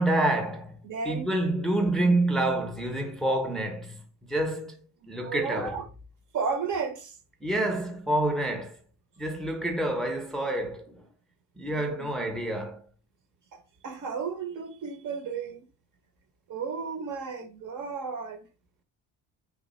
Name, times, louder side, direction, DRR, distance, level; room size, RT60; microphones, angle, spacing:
voice 1, 0.0-0.7 1.0-4.0 4.3-5.8 7.4-8.8 9.2-10.9 11.6-12.8, right 1 dB, ahead, 0.6 m, -27 dB
voice 2, 0.8-1.3 5.0-5.8 6.3-7.2 11.8-12.1 13.5-15.6 16.5-18.4, right 5 dB, 50° right, 0.7 m, -33 dB
3.0 x 2.3 x 4.1 m
cardioid pair, 105°, 39 cm